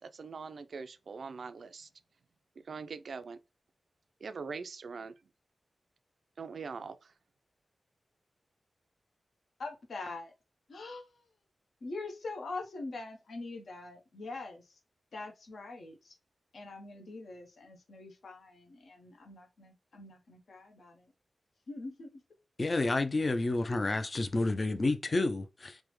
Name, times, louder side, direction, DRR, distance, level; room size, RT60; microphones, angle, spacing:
voice 1, 0.0-1.9 2.6-3.4 4.2-5.2 6.4-7.1, right 5 dB, 70° right, 0.3 m, -42 dB
voice 2, 9.6-10.3 10.7-11.3 11.8-14.8 15.1-16.2 16.5-21.1 21.7-22.2, left 3 dB, 75° left, 0.9 m, -44 dB
voice 3, 22.6-25.8, left 2 dB, 40° left, 0.4 m, -30 dB
3.4 x 2.1 x 3.0 m
wide cardioid pair, 90°, 0 cm